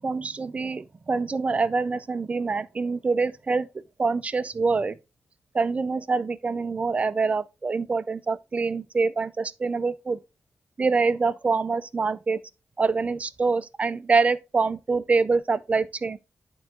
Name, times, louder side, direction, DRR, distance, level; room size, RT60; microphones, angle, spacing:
voice 1, 0.0-3.7 4.0-5.0 5.5-10.2 10.8-12.4 12.8-16.2, right 4 dB, 25° right, 0.4 m, -25 dB
11.5 x 3.8 x 3.4 m
wide cardioid pair, 175°, 5 cm